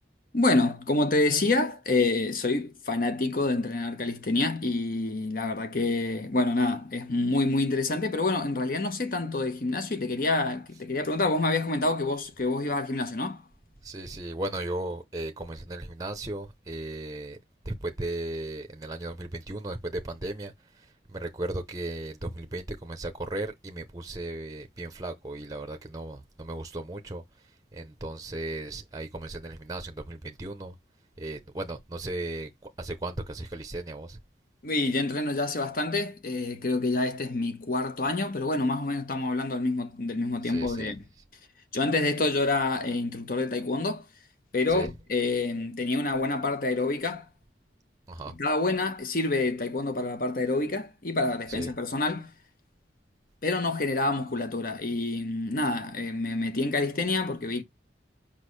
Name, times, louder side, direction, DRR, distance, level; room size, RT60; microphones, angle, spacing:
voice 1, 0.3-13.4 34.6-41.0 41.7-44.0 44.5-47.2 48.4-52.3 53.4-57.6, left 2 dB, 50° left, 1.0 m, -27 dB
voice 2, 13.8-17.4 17.6-20.5 21.1-27.2 27.7-30.7 31.2-32.5 32.8-34.2 40.4-40.9 44.7-44.9 48.1-48.3 51.5-51.7, right 2 dB, 20° right, 0.7 m, -36 dB
6.2 x 5.3 x 3.2 m
head